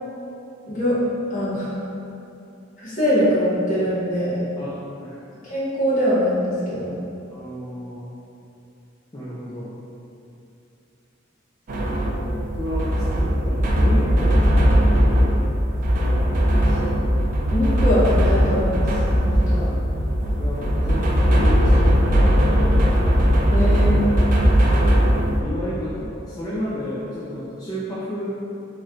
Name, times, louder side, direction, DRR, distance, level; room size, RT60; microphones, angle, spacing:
voice 1, 0.7-1.0 1.3-1.7 2.8-4.4 5.4-7.0 17.5-18.9 19.2-19.7 23.5-24.0, equal, 40° left, -11 dB, 1.3 m, -22 dB
voice 2, 4.6-5.3 7.3-8.1 9.1-9.7 11.7-15.2 16.3-17.0 19.3-19.6 20.3-22.6 24.8-28.3, left 1 dB, 20° left, -9 dB, 0.4 m, -33 dB
sound 1, 11.7-25.4, equal, 40° right, 0.4 m, -19 dB
4.2 x 3.1 x 2.4 m, 2.7 s
head